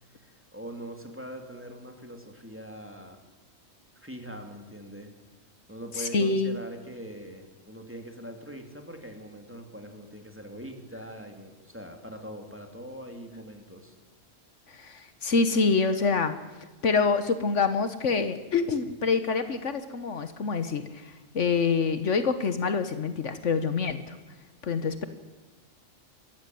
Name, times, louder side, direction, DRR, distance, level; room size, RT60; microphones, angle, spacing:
voice 1, 0.1-3.2 3.9-5.1 5.7-13.9, equal, 10° right, 4 dB, 2.7 m, -42 dB
voice 2, 6.0-6.6 14.7-16.3 16.8-24.2 24.6-25.1, left 4 dB, 65° left, 10 dB, 1.5 m, -26 dB
23.0 x 14.5 x 9.3 m, 1.2 s
omnidirectional pair, 1.3 m